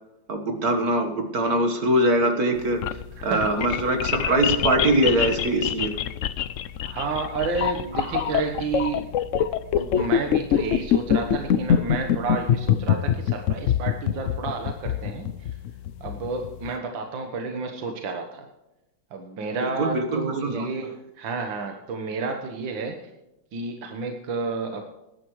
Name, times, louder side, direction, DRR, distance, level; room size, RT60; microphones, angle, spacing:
voice 1, 0.3-3.0 3.2-6.0 8.0-8.4 19.6-20.7, right 1 dB, 55° right, 5 dB, 1.8 m, -23 dB
sound 1, 2.6-16.7, left 9 dB, 90° left, 0.6 m, -24 dB
voice 2, 3.2-3.6 6.8-9.1 9.8-15.5 16.0-18.5 19.1-23.1 23.5-24.8, right 4 dB, 80° right, 4 dB, 2.0 m, -31 dB
19.0 x 11.0 x 3.1 m, 0.95 s
omnidirectional pair, 2.1 m